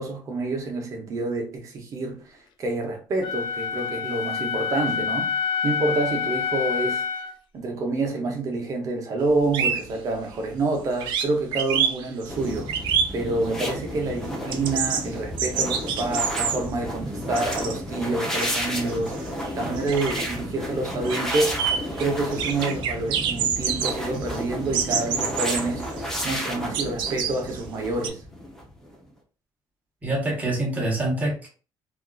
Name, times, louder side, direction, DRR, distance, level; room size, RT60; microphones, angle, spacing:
voice 1, 0.0-7.0 7.5-12.7 13.1-21.6 22.0-28.2, right 2 dB, 45° right, 0.8 m, -28 dB
Wind instrument woodwind instrument, 3.2-7.4, left 6 dB, 75° left, 0.4 m, -27 dB
sound 1, 9.3-9.4 9.5-10.7 11.0-13.7 14.0-17.9 18.2-28.1, right 7 dB, 80° right, 0.5 m, -28 dB
sound 2, 12.3-28.9, equal, 5° left, 0.6 m, -32 dB
voice 2, 30.0-31.5, right 1 dB, 20° right, 1.1 m, -25 dB
3.4 x 2.4 x 2.3 m
cardioid pair, 160°, 8 cm